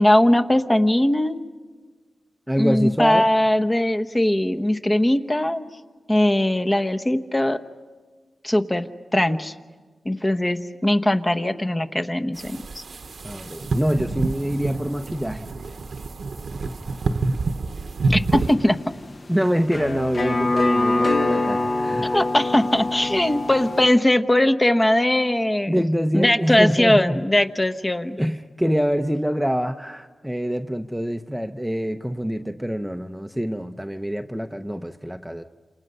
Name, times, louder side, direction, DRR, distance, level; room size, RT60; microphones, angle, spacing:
voice 1, 0.0-1.4 2.5-5.6 6.1-7.6 8.4-9.5 10.0-12.8 18.1-18.8 22.1-25.8 26.1-28.2, left 1 dB, 20° left, 8 dB, 1.1 m, -20 dB
voice 2, 2.5-3.3 13.2-15.5 19.3-22.2 25.7-27.2 28.2-35.4, equal, 5° right, 7 dB, 0.8 m, -25 dB
sound 1, 12.4-18.5, right 3 dB, 70° right, 1.0 m, -27 dB
sound 2, 18.3-23.9, left 2 dB, 50° left, 1.3 m, -24 dB
29.0 x 28.0 x 5.5 m, 1.4 s
wide cardioid pair, 75°, 0 cm